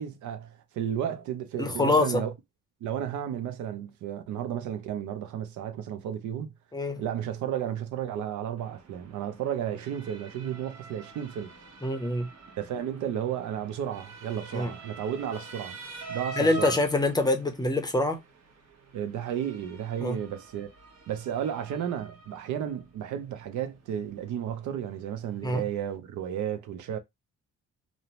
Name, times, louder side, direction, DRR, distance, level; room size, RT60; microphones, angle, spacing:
voice 1, 0.0-2.3 2.8-6.5 7.0-11.5 12.6-15.8 16.1-16.8 18.9-20.7 21.1-27.0, right 9 dB, 75° right, 0.6 m, -33 dB
voice 2, 1.6-2.2 6.7-7.0 11.8-12.3 14.5-14.7 16.4-18.2 20.0-20.2 25.4-25.6, left 2 dB, 15° left, 0.6 m, -25 dB
Motor vehicle (road) / Siren, 8.6-26.0, right 4 dB, 60° right, 1.0 m, -46 dB
2.6 x 2.0 x 2.9 m
cardioid pair, 90°, 30 cm